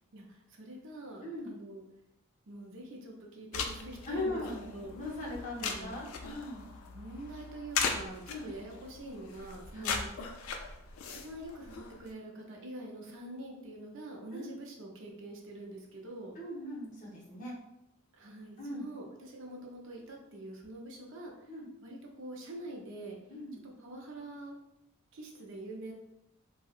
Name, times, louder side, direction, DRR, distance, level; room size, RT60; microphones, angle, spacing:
voice 1, 0.1-1.8 2.5-4.9 5.6-5.9 6.9-10.1 11.1-16.4 18.1-21.3 21.8-23.2 23.6-24.5 25.1-25.9, right 1 dB, 60° right, 0 dB, 0.5 m, -45 dB
sound 1, 3.5-12.1, left 5 dB, 75° left, 0.3 m, -39 dB
voice 2, 4.0-4.7 4.9-6.6 8.3-8.5 9.7-9.9 14.3-14.5 16.4-17.5 18.6-18.9 21.5-21.7 23.3-23.6, left 1 dB, 35° left, -5 dB, 0.8 m, -39 dB
2.7 x 2.0 x 2.4 m, 0.85 s
head